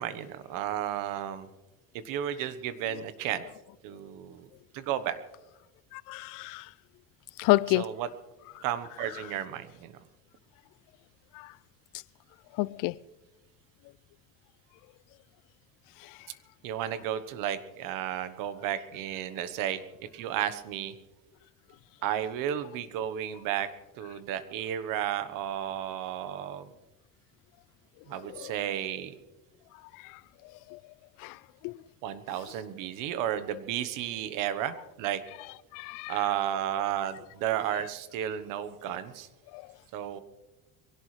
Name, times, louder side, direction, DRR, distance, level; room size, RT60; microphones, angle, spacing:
voice 1, 0.0-1.5 2.0-3.4 3.8-4.5 4.7-5.2 7.7-8.1 8.6-9.9 16.6-19.8 20.1-20.9 22.0-23.7 24.0-26.7 28.1-29.1 32.0-35.2 36.1-39.3 39.9-40.2, right 10 dB, 80° right, 1.2 m, -33 dB
voice 2, 5.9-6.6 7.4-7.8 12.6-12.9 28.4-28.5 31.2-31.3 31.6-31.7 35.7-36.1 39.5-39.6, left 21 dB, 80° left, 0.5 m, -28 dB
23.5 x 17.0 x 3.3 m
cardioid pair, 175°, 32 cm